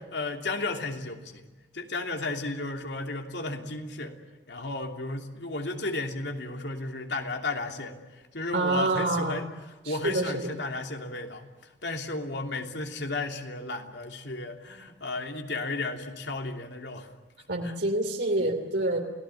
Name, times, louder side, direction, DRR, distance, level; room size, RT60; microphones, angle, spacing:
voice 1, 0.1-4.1 4.5-9.5 9.8-17.1 17.6-17.7, left 2 dB, 75° left, 3 dB, 3.0 m, -34 dB
voice 2, 8.5-9.4 9.8-10.5 17.5-19.0, right 2 dB, 70° right, 2 dB, 2.9 m, -27 dB
29.5 x 18.5 x 9.8 m, 1.2 s
head